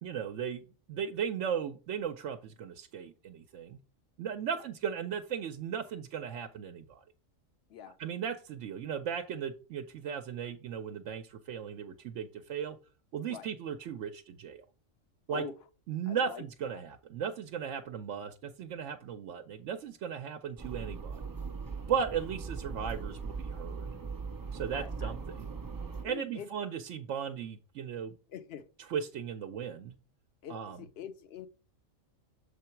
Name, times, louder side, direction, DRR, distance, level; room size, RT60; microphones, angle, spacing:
voice 1, 0.0-3.8 4.2-7.0 8.0-12.8 13.1-14.6 15.3-15.4 15.9-21.2 21.9-23.9 24.5-25.5 26.0-28.2 28.9-29.9 30.5-30.8, right 7 dB, 70° right, 0.9 m, -36 dB
voice 2, 16.1-16.8 24.7-25.2 26.0-26.5 28.3-28.7 30.4-31.5, left 8 dB, 60° left, 0.8 m, -44 dB
sound 1, 20.6-26.0, right 5 dB, 35° right, 0.3 m, -39 dB
6.9 x 3.8 x 4.4 m
omnidirectional pair, 1.3 m